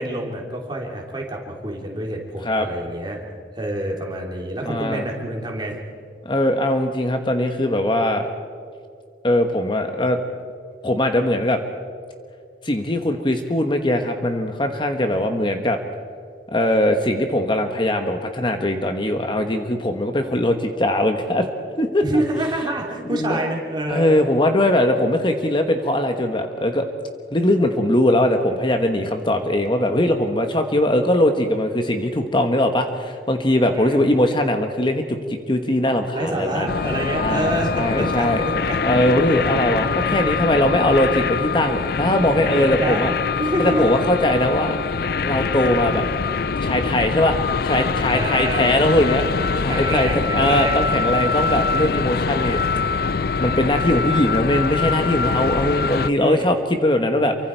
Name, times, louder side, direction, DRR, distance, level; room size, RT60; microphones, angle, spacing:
voice 1, 0.0-3.2 3.5-5.8 22.0-24.2 33.7-34.1 36.1-38.9 42.5-44.1 48.1-48.7 49.7-50.9 56.2-56.5, right 1 dB, 25° right, 0 dB, 3.2 m, -27 dB
voice 2, 4.6-5.0 6.2-8.3 9.2-10.2 10.8-11.6 12.6-15.8 16.5-21.5 21.8-22.0 23.1-23.4 23.9-26.9 27.3-36.7 37.2-38.5 38.8-43.1 43.6-44.8 45.2-46.1 46.6-52.6 53.4-57.4, left 1 dB, 30° left, 6 dB, 1.2 m, -20 dB
sound 1, 36.7-56.1, left 5 dB, 60° left, 0.5 m, -24 dB
28.0 x 24.0 x 4.6 m, 2.2 s
head